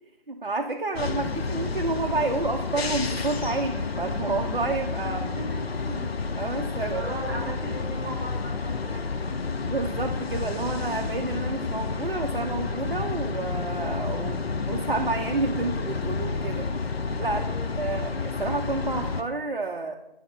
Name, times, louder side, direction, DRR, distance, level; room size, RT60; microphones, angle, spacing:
voice 1, 0.3-5.2 5.9-7.1 9.6-16.7 17.2-19.9, right 3 dB, 60° right, 2 dB, 0.6 m, -30 dB
sound 1, 0.9-19.2, left 4 dB, 85° left, 0.7 m, -30 dB
voice 2, 5.0-5.6 6.9-9.1 17.4-18.1, right 2 dB, 5° left, -16 dB, 1.4 m, -38 dB
9.0 x 4.1 x 4.3 m, 0.94 s
figure-of-eight pair, 170°, 30 cm